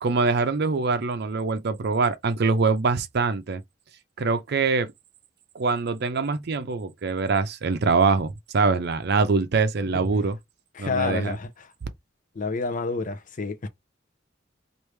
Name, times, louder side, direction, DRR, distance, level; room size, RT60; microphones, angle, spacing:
voice 1, 0.0-3.6 4.2-4.9 5.5-10.4 10.8-11.4, right 4 dB, 60° right, 0.5 m, -24 dB
voice 2, 10.7-11.7 12.3-13.7, left 4 dB, 45° left, 0.6 m, -29 dB
3.1 x 2.6 x 3.2 m
head